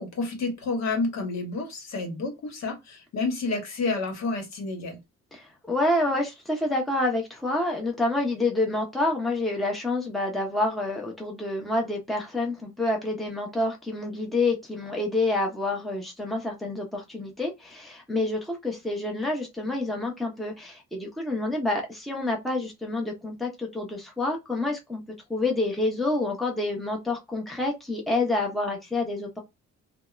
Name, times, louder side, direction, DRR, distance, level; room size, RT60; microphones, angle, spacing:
voice 1, 0.0-5.0, left 3 dB, 60° left, 1.0 m, -30 dB
voice 2, 5.3-25.0 25.3-29.4, left 2 dB, ahead, 0.8 m, -28 dB
2.7 x 2.1 x 2.3 m
cardioid pair, 90°, 30 cm